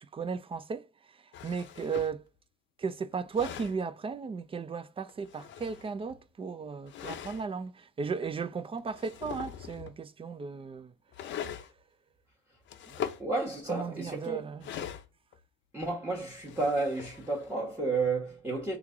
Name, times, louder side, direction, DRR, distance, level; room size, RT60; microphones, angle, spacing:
voice 1, 0.1-2.3 2.8-10.9 12.9-13.0 13.7-14.7, right 5 dB, 25° right, 0.4 m, -35 dB
sound 1, 1.3-2.2 3.1-3.8 5.1-6.2 6.9-7.4 8.2-8.3 8.8-10.0 11.1-11.7 12.7-13.2 14.6-15.4 16.3-17.5, left 9 dB, 70° left, 0.5 m, -41 dB
voice 2, 13.0-14.5 15.7-18.8, right 3 dB, 10° right, 1.2 m, -32 dB
3.2 x 2.4 x 3.7 m
cardioid pair, 90°, 20 cm